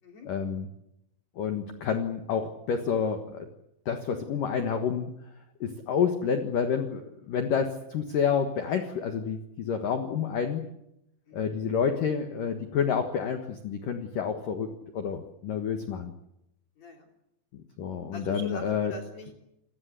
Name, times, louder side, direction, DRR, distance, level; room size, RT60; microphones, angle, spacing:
voice 1, 0.3-0.7 1.4-3.5 3.9-5.1 5.6-10.7 11.3-16.1 17.8-18.9, left 7 dB, 60° left, 6 dB, 2.3 m, -29 dB
voice 2, 16.8-17.1 18.1-19.3, left 3 dB, 35° left, 2 dB, 4.1 m, -42 dB
28.0 x 21.0 x 8.2 m, 0.84 s
omnidirectional pair, 5.8 m